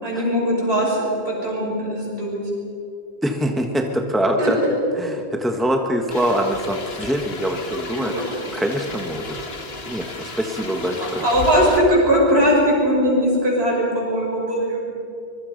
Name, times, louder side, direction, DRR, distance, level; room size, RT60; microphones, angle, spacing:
voice 1, 0.0-2.4 4.4-4.5 8.1-8.2 10.2-10.3 11.2-14.9, equal, 70° right, -3 dB, 6.6 m, -20 dB
voice 2, 3.2-4.6 5.0-8.1 8.5-9.4 9.9-11.2, equal, ahead, 3 dB, 1.4 m, -24 dB
sound 1, 6.1-11.8, left 2 dB, 65° left, 2.0 m, -34 dB
25.0 x 22.0 x 5.3 m, 2.7 s
omnidirectional pair, 1.1 m